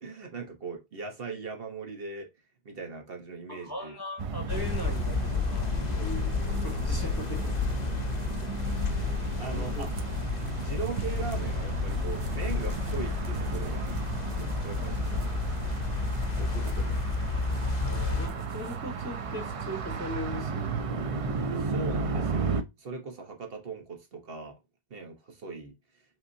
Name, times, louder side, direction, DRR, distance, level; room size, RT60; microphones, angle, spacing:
voice 1, 0.0-2.3 2.6-3.9 8.7-9.9 10.5-13.9 14.4-15.8 16.4-17.1 21.6-24.6 24.9-25.7, right 4 dB, 65° right, 1.2 m, -40 dB
voice 2, 3.5-5.7 6.0-6.3 6.6-7.5 9.5-9.9 14.5-14.9 17.8-20.7, left 1 dB, 20° left, 1.3 m, -39 dB
sound 1, 4.2-22.6, right 4 dB, 45° right, 0.5 m, -34 dB
sound 2, 4.5-18.3, left 5 dB, 50° left, 0.6 m, -31 dB
sound 3, 6.5-18.8, right 3 dB, 90° right, 1.1 m, -49 dB
5.4 x 3.6 x 2.6 m
omnidirectional pair, 1.1 m